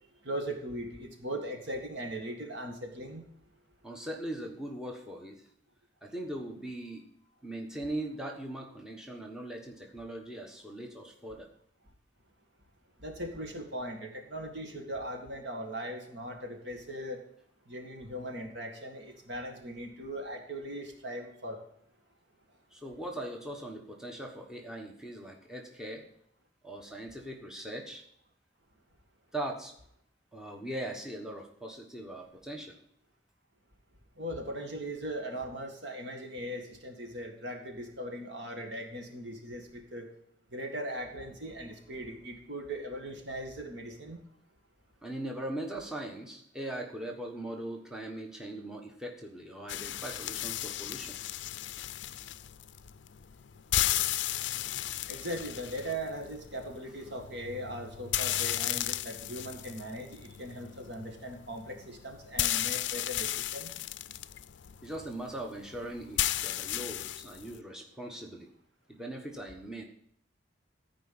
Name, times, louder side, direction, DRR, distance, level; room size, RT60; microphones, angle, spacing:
voice 1, 0.2-3.2 13.0-17.2 17.7-21.6 34.2-40.1 40.5-44.2 54.7-54.8 55.1-63.7, right 1 dB, 65° right, 4 dB, 1.9 m, -39 dB
voice 2, 3.8-5.4 6.0-7.0 7.4-11.5 22.7-26.0 26.6-28.0 29.3-29.7 30.3-32.7 45.0-51.1 64.8-68.5 68.9-69.8, right 1 dB, 5° right, 1 dB, 1.3 m, -40 dB
sound 1, 49.7-67.6, left 13 dB, 65° left, 0.4 m, -35 dB
13.5 x 5.1 x 8.7 m, 0.69 s
head